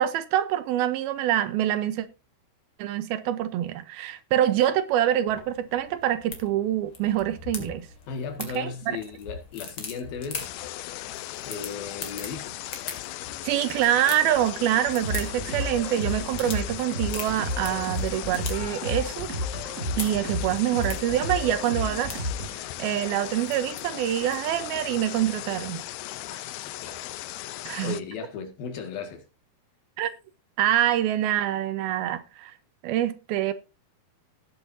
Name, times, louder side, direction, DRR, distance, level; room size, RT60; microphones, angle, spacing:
voice 1, 0.0-2.1 2.8-7.9 8.4-8.7 13.4-19.3 20.0-22.1 22.8-25.8 27.6-28.0 30.0-30.1 30.6-32.5 32.8-33.5, right 12 dB, 80° right, 2.7 m, -25 dB
sound 1, 5.3-24.7, left 5 dB, 40° left, 2.5 m, -42 dB
voice 2, 8.1-10.5 11.5-12.6 26.3-26.4 26.8-27.1 27.8-29.3, left 5 dB, 70° left, 3.6 m, -36 dB
sound 2, 10.4-28.0, left 16 dB, 85° left, 2.7 m, -37 dB
sound 3, 15.0-22.6, equal, 20° right, 3.3 m, -32 dB
18.5 x 7.5 x 2.7 m
omnidirectional pair, 4.5 m